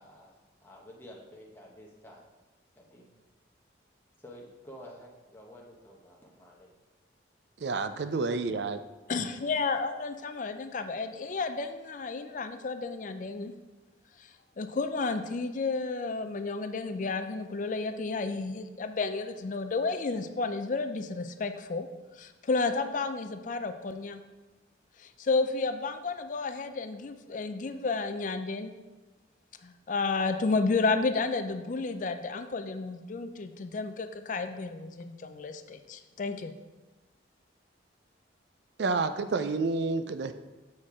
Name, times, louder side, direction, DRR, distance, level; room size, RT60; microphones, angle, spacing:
voice 1, 0.0-2.2 2.8-3.1 4.2-6.7, equal, 10° left, -3 dB, 1.0 m, -50 dB
voice 2, 7.6-8.8 38.8-40.3, right 4 dB, 60° right, 10 dB, 0.4 m, -29 dB
voice 3, 9.1-13.5 14.2-14.3 14.6-21.9 22.2-24.2 25.0-28.7 29.6-36.5, left 4 dB, 40° left, 9 dB, 0.4 m, -31 dB
7.3 x 4.4 x 4.7 m, 1.2 s
head